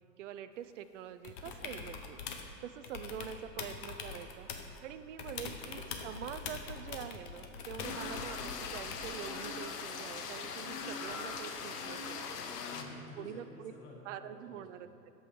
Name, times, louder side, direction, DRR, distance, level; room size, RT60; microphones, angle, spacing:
voice 1, 0.2-2.2 2.6-4.5 4.8-12.4 13.2-13.7 14.1-14.9, right 10 dB, 50° right, 11 dB, 0.5 m, -45 dB
sound 1, 1.2-2.5 2.8-4.8 5.2-9.2 11.1-11.2, left 5 dB, 30° left, 0.7 m, -43 dB
voice 2, 5.2-5.7 12.7-15.2, left 2 dB, 10° left, -2 dB, 0.4 m, -53 dB
sound 2, 7.8-12.8, left 5 dB, 65° left, 1.1 m, -40 dB
13.0 x 5.5 x 4.8 m, 2.6 s
hypercardioid pair, 130°, 50 cm